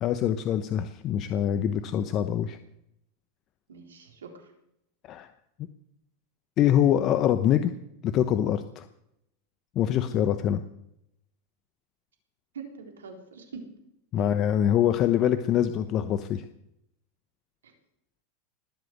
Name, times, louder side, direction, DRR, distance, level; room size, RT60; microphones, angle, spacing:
voice 1, 0.0-2.6 5.1-5.3 6.6-7.7 8.0-8.8 9.7-10.6 14.1-16.4, left 10 dB, 45° left, 10 dB, 1.0 m, -24 dB
voice 2, 3.7-4.5 12.5-13.7 14.2-14.3 17.6-17.7, right 5 dB, 85° right, 3 dB, 3.9 m, -43 dB
20.0 x 7.9 x 8.1 m, 0.80 s
hypercardioid pair, 100°, 0 cm